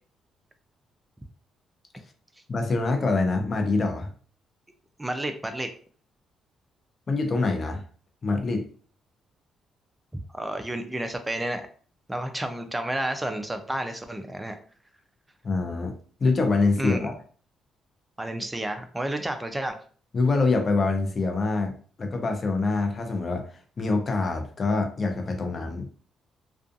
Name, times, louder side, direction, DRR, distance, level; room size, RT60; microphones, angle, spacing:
voice 1, 2.5-4.1 7.1-7.8 8.2-8.7 15.4-15.9 16.2-17.1 20.1-21.7 22.0-23.4 23.8-25.9, left 3 dB, 40° left, 4 dB, 0.6 m, -25 dB
voice 2, 5.0-5.7 10.3-11.7 12.1-14.6 16.8-17.1 18.2-19.8, right 1 dB, 10° right, 7 dB, 0.4 m, -31 dB
2.5 x 2.3 x 2.5 m, 0.44 s
cardioid pair, 90°, 0 cm